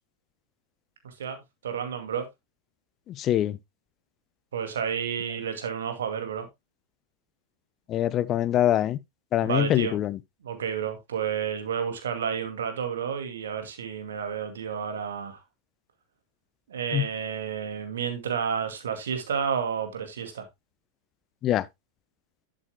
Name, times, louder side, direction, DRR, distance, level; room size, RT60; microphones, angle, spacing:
voice 1, 1.0-2.3 4.5-6.5 9.4-10.0 10.4-15.4 16.7-20.5, right 7 dB, 65° right, 2.2 m, -31 dB
voice 2, 3.1-3.6 7.9-9.0 9.3-10.2 16.9-17.1 21.4-21.7, left 12 dB, 30° left, 0.5 m, -24 dB
11.0 x 7.5 x 2.2 m
figure-of-eight pair, 90°, 0 cm